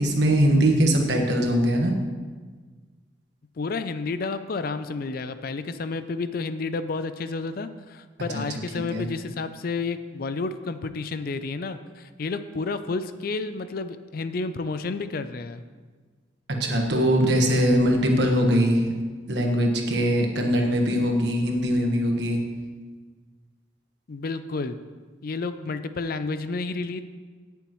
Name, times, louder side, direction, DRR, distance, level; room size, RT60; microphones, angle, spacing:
voice 1, 0.0-1.9 8.3-8.4 8.7-9.1 16.6-18.8 19.3-22.4, equal, 60° right, 1 dB, 1.4 m, -21 dB
voice 2, 3.6-15.6 24.1-24.8 25.2-27.0, left 3 dB, 50° left, 11 dB, 0.4 m, -31 dB
17.0 x 7.0 x 3.1 m, 1.4 s
head